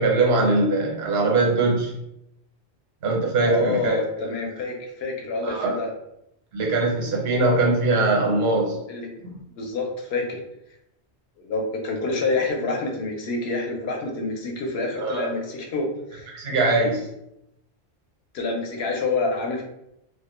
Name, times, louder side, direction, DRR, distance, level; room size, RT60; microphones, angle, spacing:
voice 1, 0.0-1.9 3.0-4.0 5.4-5.8 6.5-8.8 9.2-9.4 15.0-15.3 16.3-17.1, right 3 dB, 70° right, -1 dB, 0.9 m, -21 dB
voice 2, 3.4-5.9 8.9-9.1 9.5-10.4 11.4-16.3 18.3-19.6, left 3 dB, 70° left, 1 dB, 0.8 m, -27 dB
2.2 x 2.1 x 2.9 m, 0.82 s
omnidirectional pair, 1.1 m